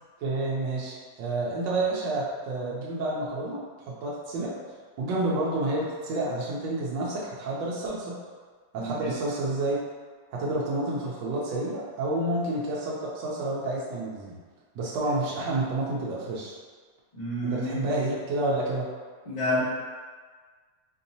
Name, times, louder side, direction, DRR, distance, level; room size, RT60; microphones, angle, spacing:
voice 1, 0.2-4.5 5.0-8.2 8.7-9.8 10.3-14.4 14.8-16.5 17.4-18.9, right 2 dB, 85° right, -5 dB, 1.3 m, -29 dB
voice 2, 8.8-9.1 17.1-17.9 19.3-19.6, left 1 dB, 30° left, -13 dB, 0.8 m, -29 dB
4.5 x 2.7 x 2.7 m, 1.5 s
omnidirectional pair, 1.9 m